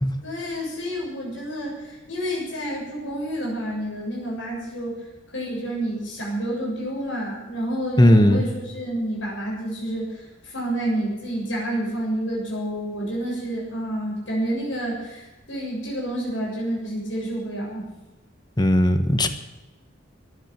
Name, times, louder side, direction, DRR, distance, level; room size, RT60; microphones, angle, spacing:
voice 1, 0.2-4.9 5.3-17.9, right 1 dB, 75° left, -4 dB, 7.3 m, -29 dB
voice 2, 8.0-8.4 18.6-19.3, left 1 dB, 20° left, 8 dB, 1.3 m, -17 dB
15.5 x 10.5 x 9.0 m, 1.1 s
head